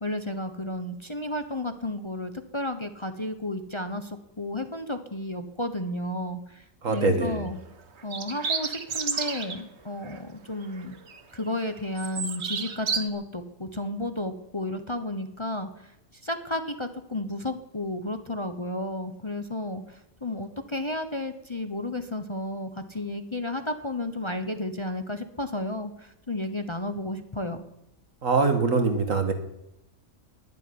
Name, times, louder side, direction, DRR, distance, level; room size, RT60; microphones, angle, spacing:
voice 1, 0.0-7.6 8.0-10.9 11.3-15.9 16.2-27.6, left 1 dB, 25° left, 7 dB, 1.0 m, -32 dB
voice 2, 6.8-7.4 28.2-29.3, right 4 dB, 70° right, 6 dB, 2.3 m, -23 dB
sound 1, 6.9-7.2 8.0-9.6 10.0-10.2 10.6-11.4 11.7-13.0, right 5 dB, 55° right, 1.5 m, -31 dB
12.0 x 11.5 x 9.8 m, 0.84 s
omnidirectional pair, 1.4 m